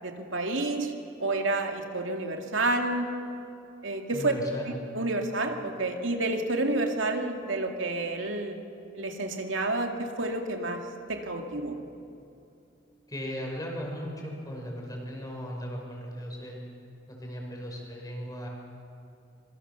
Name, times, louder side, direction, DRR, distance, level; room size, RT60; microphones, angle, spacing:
voice 1, 0.0-0.9 1.2-3.1 3.8-4.3 4.9-8.6 8.9-10.8 11.1-11.8, right 2 dB, 90° right, 3 dB, 2.3 m, -29 dB
voice 2, 4.1-4.7 13.1-16.6 17.1-18.5, equal, 20° left, 0 dB, 5.3 m, -37 dB
25.5 x 23.0 x 7.0 m, 2.6 s
head